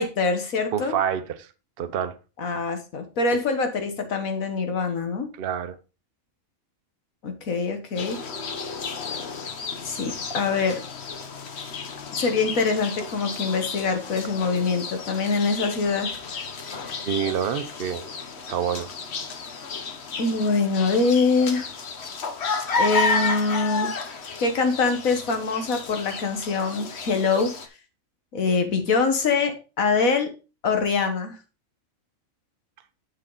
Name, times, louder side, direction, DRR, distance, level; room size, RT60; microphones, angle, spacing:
voice 1, 0.0-0.9 2.4-5.3 7.2-8.2 9.8-10.8 12.2-16.2 20.2-21.7 22.8-27.5 28.3-30.3 30.6-31.4, left 4 dB, 90° left, 1.8 m, -24 dB
voice 2, 0.7-1.5 1.8-2.2 5.4-5.8 17.0-18.0 18.5-18.9, right 8 dB, 50° right, 0.9 m, -27 dB
sound 1, 7.9-27.7, left 4 dB, 55° left, 1.1 m, -32 dB
7.7 x 6.5 x 3.9 m
omnidirectional pair, 1.4 m